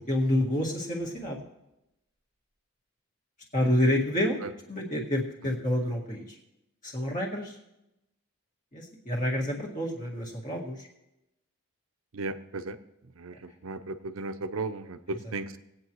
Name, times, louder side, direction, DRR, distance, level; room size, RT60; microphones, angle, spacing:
voice 1, 0.0-1.4 3.5-4.4 4.7-6.2 6.8-7.6 8.7-10.9 15.2-15.6, left 1 dB, 35° left, -2 dB, 1.9 m, -28 dB
voice 2, 12.1-12.8 13.2-13.3 13.6-15.6, right 3 dB, 80° right, 10 dB, 0.7 m, -35 dB
19.0 x 8.7 x 3.1 m, 0.89 s
head